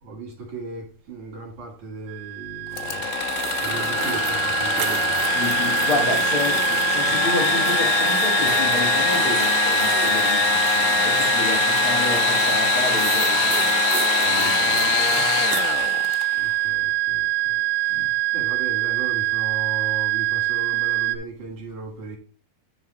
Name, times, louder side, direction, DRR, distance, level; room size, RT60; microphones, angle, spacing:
voice 1, 0.0-3.1 3.6-5.3 16.3-22.2, right 3 dB, 50° right, 3.2 m, -37 dB
sound 1, 2.1-21.2, right 17 dB, 85° right, 2.9 m, -24 dB
Engine / Sawing, 2.7-16.4, left 11 dB, 85° left, 2.8 m, -24 dB
sound 2, 3.3-6.8 7.2-15.7, right 9 dB, 70° right, 2.6 m, -35 dB
voice 2, 5.3-13.9 14.2-15.1 17.9-18.1, left 3 dB, 50° left, 1.6 m, -30 dB
10.5 x 4.0 x 4.4 m
omnidirectional pair, 5.0 m